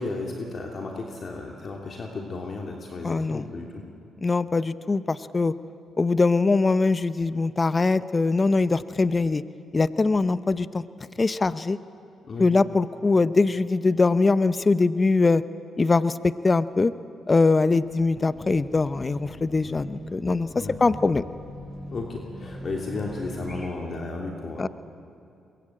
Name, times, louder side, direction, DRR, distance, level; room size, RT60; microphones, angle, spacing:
voice 1, 0.0-3.8 12.2-12.5 20.5-20.9 21.9-24.7, left 3 dB, 50° left, 1 dB, 3.1 m, -34 dB
voice 2, 3.0-3.4 4.2-5.5 6.0-9.4 9.7-10.8 11.2-11.8 12.4-15.4 15.8-16.9 17.3-20.5 20.8-21.2 24.6-24.7, left 3 dB, 30° left, 15 dB, 0.8 m, -22 dB
Race car auto racing / Alarm, 17.4-23.7, equal, 10° left, 6.4 m, -41 dB
22.5 x 22.5 x 8.8 m, 2.5 s
supercardioid pair, 60°, 0 cm